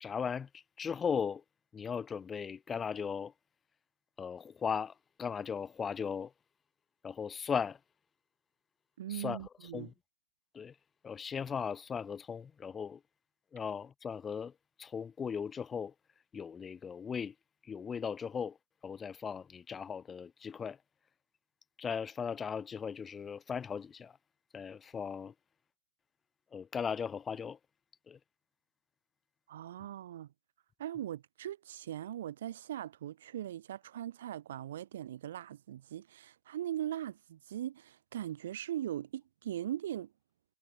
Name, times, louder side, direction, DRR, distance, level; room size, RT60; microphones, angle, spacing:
voice 1, 0.0-1.4 1.7-3.3 4.2-4.9 5.2-6.3 7.0-7.8 9.1-9.4 9.7-9.9 10.5-10.7 11.0-13.0 13.5-14.5 14.8-15.9 16.3-17.3 17.7-18.6 18.8-20.8 21.8-24.1 24.5-25.3 26.5-27.6 28.1-28.2, left 6 dB, 15° left, 0.5 m, -37 dB
voice 2, 9.0-9.9 29.5-30.3 30.8-40.1, right 11 dB, 90° right, 2.0 m, -40 dB
supercardioid pair, 165°, 0 cm